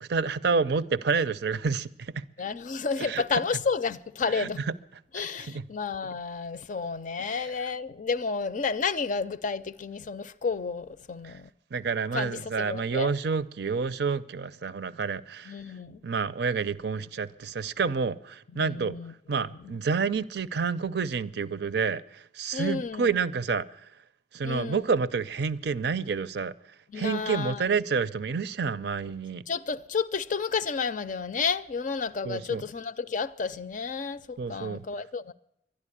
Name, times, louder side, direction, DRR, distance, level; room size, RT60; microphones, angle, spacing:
voice 1, 0.0-2.3 3.0-3.2 4.3-4.5 5.1-5.3 5.5-5.6 11.2-11.3 11.7-15.5 16.0-19.0 19.3-23.6 24.3-26.5 26.9-29.4 32.2-32.6 34.4-34.8, right 5 dB, 65° right, 0.5 m, -29 dB
voice 2, 2.4-4.6 5.1-11.5 12.1-13.1 15.5-16.0 18.5-19.1 19.5-19.7 22.5-23.2 24.4-24.9 26.9-27.7 29.5-35.3, left 5 dB, 45° left, 0.5 m, -31 dB
11.5 x 11.0 x 9.8 m
head